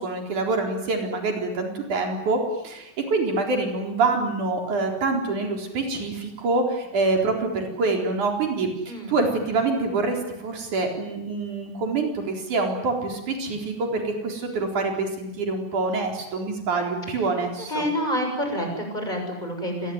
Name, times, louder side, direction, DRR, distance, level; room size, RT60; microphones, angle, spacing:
voice 1, 0.0-2.4 2.6-17.8, right 3 dB, 85° right, 2 dB, 5.6 m, -26 dB
voice 2, 17.7-19.9, equal, 15° left, 3 dB, 6.8 m, -28 dB
27.0 x 21.0 x 9.6 m, 0.91 s
omnidirectional pair, 3.4 m